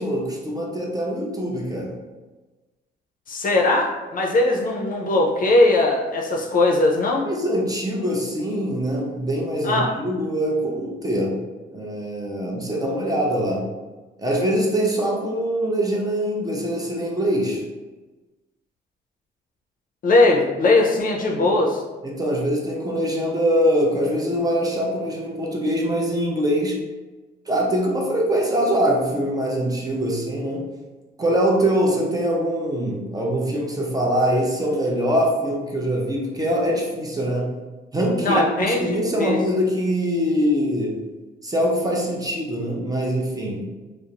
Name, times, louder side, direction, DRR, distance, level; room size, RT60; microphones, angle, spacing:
voice 1, 0.0-2.0 7.2-11.4 11.7-13.7 14.2-17.6 21.3-21.6 22.0-26.8 27.5-30.7 31.2-37.6 37.9-41.0 41.4-43.7, equal, 20° right, -1 dB, 0.5 m, -23 dB
voice 2, 3.3-7.3 9.6-9.9 20.0-21.8 38.2-39.4, left 2 dB, 45° left, 0 dB, 0.5 m, -19 dB
2.4 x 2.0 x 2.8 m, 1.2 s
cardioid pair, 90°, 20 cm